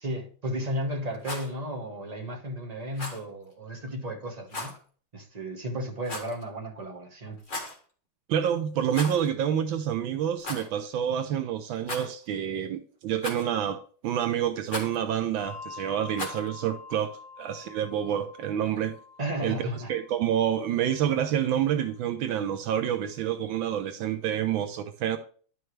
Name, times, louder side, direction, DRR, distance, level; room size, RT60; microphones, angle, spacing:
voice 1, 0.0-4.8 5.1-7.4 19.2-19.9, equal, 25° right, 1.0 m, -34 dB
Rattle, 1.1-1.5 2.9-3.2 4.5-4.8 6.0-6.4 7.4-7.8 8.9-9.3 9.6-9.7 10.4-10.7 11.8-12.3 13.2-13.6 14.7-15.0 16.1-16.5, left 2 dB, 25° left, 1.6 m, -36 dB
voice 2, 8.3-19.0 19.4-25.2, right 9 dB, 80° right, 1.4 m, -28 dB
Bell, 15.4-22.2, left 5 dB, 5° left, 3.6 m, -47 dB
11.0 x 5.6 x 3.2 m
omnidirectional pair, 2.1 m